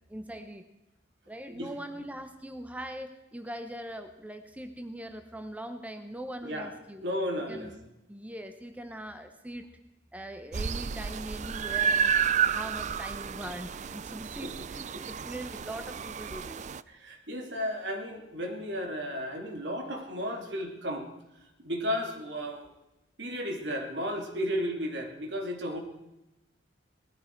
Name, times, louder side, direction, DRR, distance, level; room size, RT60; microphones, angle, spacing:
voice 1, 0.1-0.7 1.3-7.0 7.5-7.8 8.1-9.7 10.1-12.1 12.4-16.6, right 1 dB, 10° right, 7 dB, 0.8 m, -41 dB
voice 2, 7.0-7.7 14.4-14.7 14.9-15.0 16.9-21.1 21.6-22.7 23.2-25.8, equal, 70° right, 3 dB, 2.7 m, -34 dB
sound 1, 10.5-16.8, right 7 dB, 40° right, 0.4 m, -31 dB
18.5 x 14.0 x 4.6 m, 0.95 s
head